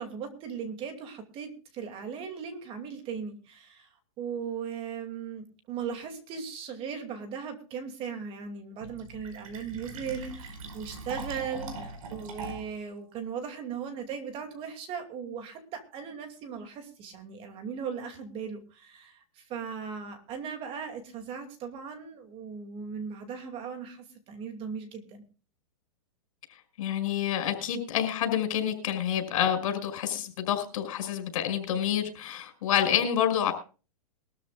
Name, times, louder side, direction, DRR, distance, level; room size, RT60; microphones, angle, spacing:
voice 1, 0.0-3.9 4.2-25.2, right 6 dB, 30° right, 2.5 m, -38 dB
Fill (with liquid), 8.8-12.8, right 3 dB, 65° right, 5.2 m, -41 dB
voice 2, 26.5-33.5, left 10 dB, 65° left, 5.5 m, -28 dB
22.0 x 13.5 x 2.4 m
hypercardioid pair, 145°, 19 cm